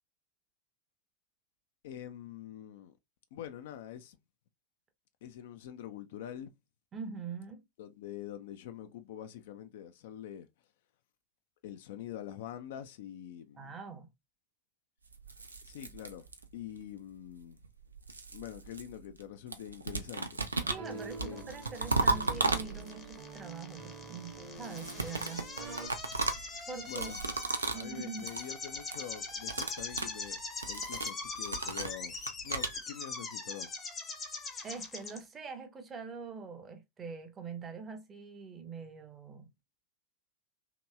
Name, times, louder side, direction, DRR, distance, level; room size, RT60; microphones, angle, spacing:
voice 1, 1.8-2.9 3.3-4.2 5.2-6.5 7.8-10.5 11.6-13.7 15.6-16.3 16.5-17.6 18.3-20.4 20.9-21.5 26.9-27.2 27.7-30.4 30.7-32.2 32.4-33.7, left 11 dB, 55° left, 0.4 m, -45 dB
voice 2, 6.9-7.6 13.6-14.1 20.7-25.5 26.7-27.2 27.7-28.3 34.6-39.5, right 5 dB, 20° right, 0.7 m, -44 dB
sound 1, 15.1-16.7 17.6-19.2 19.5-23.1 24.6-27.9 28.2-28.5 28.8-29.1 29.4-32.8, right 3 dB, 80° right, 0.4 m, -35 dB
sound 2, 20.6-25.9, right 4 dB, 45° right, 0.9 m, -46 dB
sound 3, 20.8-35.2, left 3 dB, 20° left, 0.7 m, -42 dB
2.9 x 2.8 x 2.2 m
figure-of-eight pair, 90°, 0 cm